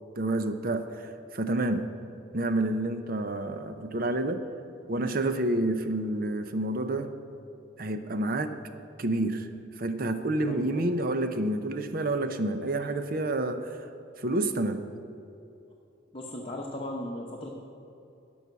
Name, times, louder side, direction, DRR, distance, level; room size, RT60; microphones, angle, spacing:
voice 1, 0.2-1.9 2.3-4.4 4.9-7.1 7.8-8.5 9.0-9.5 9.8-13.8 14.2-14.8, right 2 dB, 50° right, 9 dB, 0.7 m, -29 dB
voice 2, 16.1-17.5, left 1 dB, 30° left, -2 dB, 0.8 m, -36 dB
12.5 x 5.5 x 8.1 m, 2.7 s
head